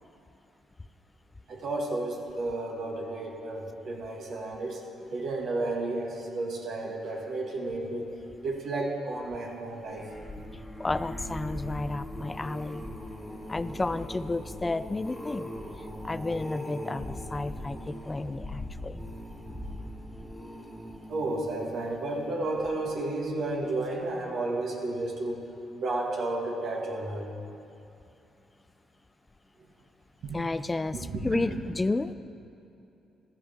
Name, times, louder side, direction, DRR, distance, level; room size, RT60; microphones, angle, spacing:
voice 1, 1.5-4.8 5.1-8.1 8.4-10.1 19.8-19.9 21.1-25.4 25.7-27.3 30.2-30.4 31.1-31.6, right 2 dB, 65° right, 0 dB, 2.0 m, -32 dB
sound 1, 9.7-23.1 23.6-24.0 24.2-24.3, left 1 dB, ahead, 1.6 m, -40 dB
voice 2, 10.8-12.9 13.5-15.5 15.8-19.0 30.3-32.1, left 2 dB, 20° left, 14 dB, 0.3 m, -32 dB
15.5 x 12.5 x 3.6 m, 2.8 s
cardioid pair, 90°, 0 cm